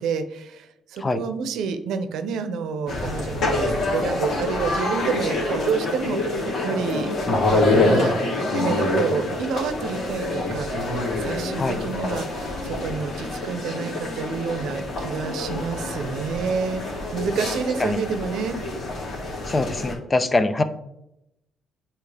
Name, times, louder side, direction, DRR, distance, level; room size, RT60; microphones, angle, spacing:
voice 1, 0.0-7.1 7.5-8.2 8.5-16.9 17.1-18.6, right 6 dB, 85° right, 9 dB, 0.7 m, -29 dB
sound 1, 2.9-19.9, left 2 dB, 70° left, 2.4 m, -26 dB
voice 2, 19.5-20.6, left 2 dB, 25° left, 11 dB, 0.6 m, -23 dB
8.4 x 4.4 x 3.4 m, 0.84 s
cardioid pair, 90°, 0 cm